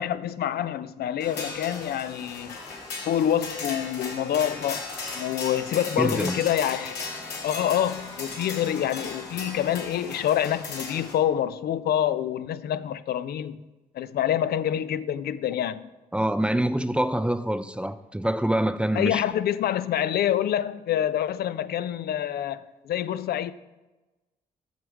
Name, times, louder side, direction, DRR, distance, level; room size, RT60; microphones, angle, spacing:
voice 1, 0.0-2.6 3.1-4.9 5.2-7.0 7.4-13.6 13.9-15.9 18.9-23.5, left 10 dB, 70° left, 0.4 m, -26 dB
sound 1, 1.2-11.1, left 4 dB, 90° left, 1.6 m, -37 dB
voice 2, 6.0-6.4 16.1-19.2, right 1 dB, 5° right, 0.5 m, -25 dB
8.0 x 6.2 x 4.8 m
supercardioid pair, 60°, 17 cm